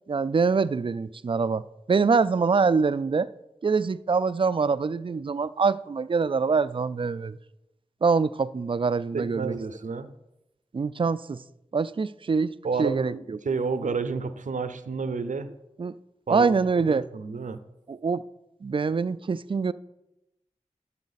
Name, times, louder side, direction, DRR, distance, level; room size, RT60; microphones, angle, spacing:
voice 1, 0.1-1.6 1.9-3.3 3.6-7.4 8.0-9.6 10.7-11.4 11.7-12.5 12.8-13.4 15.8-15.9 16.3-17.0 17.9-18.2 18.6-19.7, right 5 dB, 45° right, 0.4 m, -24 dB
voice 2, 9.1-10.1 12.6-15.5 16.3-16.6 16.9-17.6, right 4 dB, 85° right, 0.6 m, -30 dB
11.5 x 7.3 x 4.1 m
cardioid pair, 45°, 13 cm